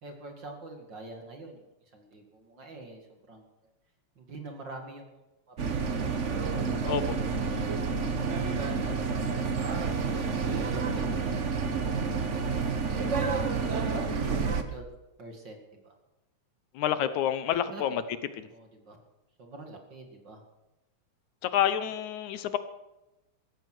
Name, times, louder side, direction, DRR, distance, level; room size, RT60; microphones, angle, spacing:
voice 1, 0.0-3.4 4.2-5.2 5.5-6.1 10.3-11.6 13.9-14.9 15.2-15.9 17.5-18.1 18.5-19.0 19.4-20.4, right 2 dB, 40° right, 3 dB, 2.6 m, -46 dB
sound 1, 5.6-14.6, right 5 dB, 75° right, 0.6 m, -29 dB
voice 2, 6.8-7.2 16.7-18.0 18.4-18.5 21.4-22.6, left 10 dB, 80° left, 13 dB, 2.3 m, -28 dB
16.0 x 14.0 x 6.2 m, 0.97 s
omnidirectional pair, 3.4 m